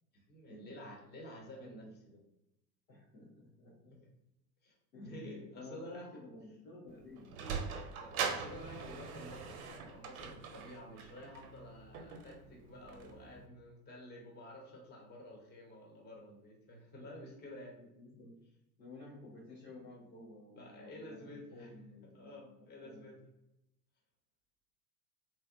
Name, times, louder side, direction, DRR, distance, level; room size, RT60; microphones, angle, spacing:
voice 1, 0.1-2.2 3.9-4.1 4.6-4.7 5.0-6.1 6.9-7.0 8.0-17.8 20.6-21.7 22.1-23.2, left 1 dB, 20° left, -1 dB, 0.9 m, -51 dB
voice 2, 1.6-1.9 2.9-3.9 4.9-7.5 17.7-18.4 18.8-23.1, left 2 dB, 80° left, -7 dB, 1.2 m, -53 dB
Sliding door, 6.9-13.5, right 6 dB, 60° right, 0.6 m, -42 dB
3.2 x 3.0 x 2.5 m, 0.88 s
figure-of-eight pair, 80°, 49 cm